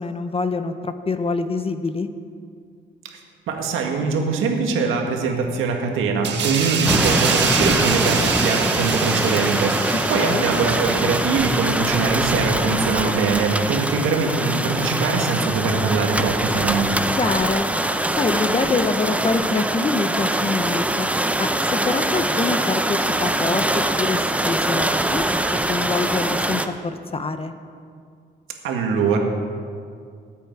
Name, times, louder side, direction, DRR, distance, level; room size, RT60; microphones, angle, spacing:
voice 1, 0.0-2.1 10.1-10.4 17.2-17.6 18.2-21.1 21.4-25.4 25.7-26.6 27.1-27.5, left 3 dB, 30° left, 9 dB, 0.7 m, -25 dB
voice 2, 3.5-16.9 28.6-29.2, right 4 dB, 90° right, 2 dB, 1.9 m, -22 dB
sound 1, 6.2-13.4 13.8-14.0, right 6 dB, 65° right, 1.6 m, -27 dB
sound 2, 6.8-26.7, right 1 dB, 5° right, 0.7 m, -23 dB
20.0 x 8.4 x 4.7 m, 2.2 s
cardioid pair, 90°, 20 cm